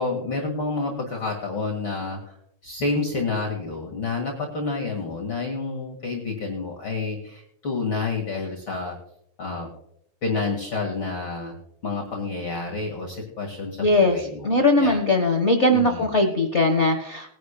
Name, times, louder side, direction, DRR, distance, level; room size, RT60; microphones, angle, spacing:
voice 1, 0.0-2.4 2.6-9.0 9.4-9.7 10.2-11.5 11.8-15.0 15.7-16.1, left 3 dB, 45° left, 0 dB, 2.3 m, -29 dB
voice 2, 13.8-14.2 14.4-17.3, left 2 dB, 80° left, 4 dB, 0.6 m, -20 dB
21.0 x 11.0 x 2.2 m, 0.72 s
omnidirectional pair, 3.4 m